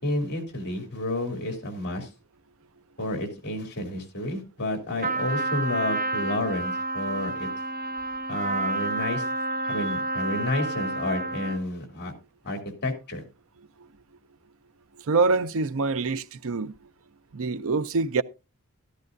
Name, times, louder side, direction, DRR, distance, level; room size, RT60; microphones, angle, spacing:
voice 1, 0.0-2.1 3.0-7.5 8.3-9.2 9.7-12.1 12.4-13.2, left 1 dB, 50° left, 2.9 m, -30 dB
Trumpet, 5.0-11.7, right 2 dB, 40° right, 0.9 m, -29 dB
voice 2, 15.1-16.7 17.3-18.2, right 4 dB, 65° right, 0.6 m, -25 dB
13.5 x 13.0 x 2.6 m
head